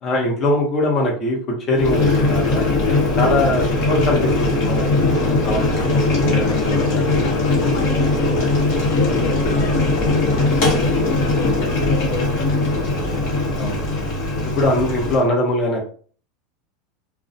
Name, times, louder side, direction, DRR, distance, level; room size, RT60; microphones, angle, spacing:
voice 1, 0.0-2.7 3.2-7.1 8.2-8.4 9.0-9.3 11.4-11.5 13.5-14.1 14.4-15.9, left 1 dB, 35° left, -1 dB, 0.9 m, -22 dB
Boiling, 1.7-15.2, left 2 dB, 60° left, 1.2 m, -19 dB
voice 2, 3.3-3.6 5.1-6.0 6.5-10.2 10.6-13.2, left 3 dB, 85° left, 1 dB, 0.7 m, -32 dB
2.4 x 2.1 x 2.6 m, 0.43 s
supercardioid pair, 135°, 0 cm